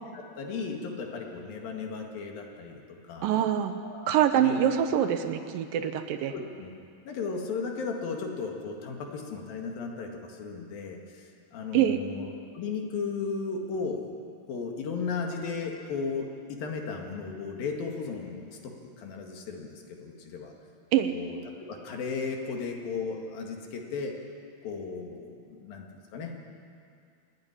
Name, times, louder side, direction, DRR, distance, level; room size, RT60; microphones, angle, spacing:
voice 1, 0.1-3.3 3.8-4.1 4.4-4.6 6.3-6.7 7.1-14.1 14.5-20.5 21.1-21.4 21.7-24.2 24.6-26.4, left 4 dB, 70° left, 1 dB, 3.7 m, -35 dB
voice 2, 3.2-3.7 4.1-6.3 11.7-12.0 20.9-21.2, right 10 dB, 75° right, 8 dB, 2.4 m, -24 dB
26.5 x 10.5 x 9.9 m, 2.3 s
omnidirectional pair, 4.3 m